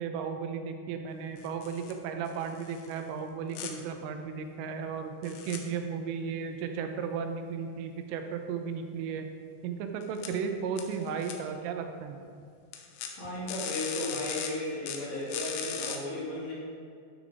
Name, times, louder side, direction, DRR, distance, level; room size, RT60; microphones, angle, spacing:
voice 1, 0.0-9.3 9.6-12.2, right 6 dB, 85° right, 6 dB, 3.3 m, -35 dB
sound 1, 1.4-1.9 2.3-2.9 3.5-3.7 5.2-5.6 10.0-10.3 10.8-11.3 12.7-13.1 13.5-14.5 14.9-16.0, left 8 dB, 80° left, 3.0 m, -38 dB
voice 2, 13.2-16.5, left 1 dB, 45° left, -10 dB, 3.7 m, -35 dB
12.5 x 6.1 x 3.9 m, 2.3 s
omnidirectional pair, 5.6 m